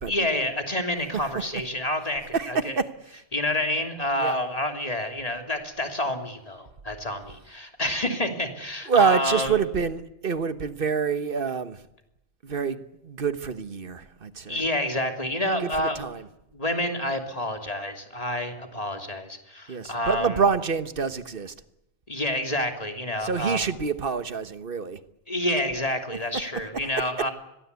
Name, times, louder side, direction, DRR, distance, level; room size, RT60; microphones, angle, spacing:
voice 1, 0.1-2.8 3.3-9.6 14.5-16.1 16.5-20.4 22.1-23.6 25.3-27.3, left 1 dB, 35° left, 5 dB, 3.2 m, -28 dB
voice 2, 8.9-11.8 12.4-12.8 13.0-14.6 15.6-16.2 19.7-21.5 23.2-25.0, right 5 dB, 55° right, 12 dB, 1.4 m, -26 dB
28.0 x 22.0 x 8.3 m, 0.87 s
omnidirectional pair, 1.2 m